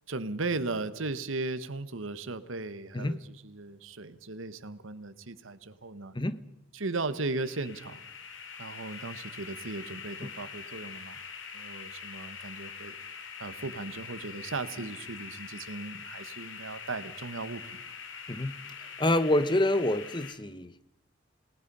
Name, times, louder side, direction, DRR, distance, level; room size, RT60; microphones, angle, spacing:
voice 1, 0.1-6.1 6.7-8.1 8.6-11.2 11.5-12.9 13.4-17.8, right 3 dB, 85° right, 13 dB, 1.3 m, -37 dB
sound 1, 7.1-20.3, left 6 dB, 75° left, 2.6 m, -44 dB
voice 2, 19.0-20.7, left 1 dB, 25° left, 14 dB, 0.9 m, -27 dB
29.0 x 19.0 x 5.5 m, 0.83 s
head